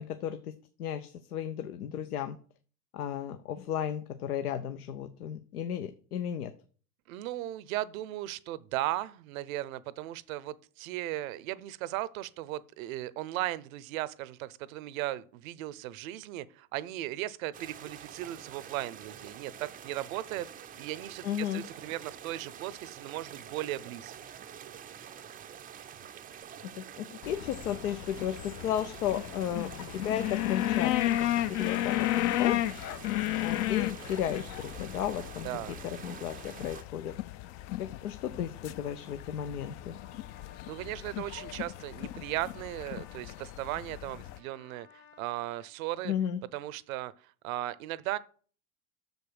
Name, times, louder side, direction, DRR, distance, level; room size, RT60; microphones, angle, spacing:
voice 1, 0.0-2.4 2.9-6.5 21.2-21.6 26.6-32.6 33.4-35.5 35.8-37.1 37.8-39.9 46.0-46.4, left 9 dB, 80° left, 0.7 m, -34 dB
voice 2, 7.1-24.1 35.4-35.8 40.7-46.1 46.5-47.1 47.4-48.2, right 15 dB, 65° right, 0.7 m, -37 dB
sound 1, 17.5-36.8, right 9 dB, 20° right, 0.4 m, -47 dB
sound 2, 27.2-44.4, left 15 dB, 40° left, 0.4 m, -34 dB
Trumpet, 37.7-45.7, left 7 dB, 65° left, 2.9 m, -59 dB
6.6 x 5.2 x 6.3 m
hypercardioid pair, 85°, 45 cm